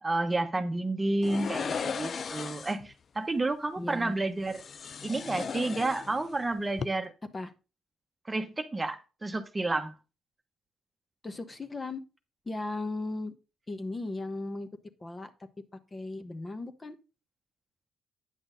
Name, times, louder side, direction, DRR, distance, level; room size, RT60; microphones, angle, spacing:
voice 1, 0.0-4.6 5.0-7.1 8.3-9.9, right 2 dB, 20° right, 1.0 m, -30 dB
sound 1, 1.2-2.9 4.5-6.4 6.7-6.9, left 6 dB, 50° left, 0.4 m, -36 dB
voice 2, 3.8-4.1 7.3-7.5 11.2-12.0 12.4-13.3 13.7-14.7 15.0-15.3 15.9-16.9, left 2 dB, 25° left, 1.2 m, -36 dB
9.3 x 6.1 x 3.9 m
cardioid pair, 90°, 0 cm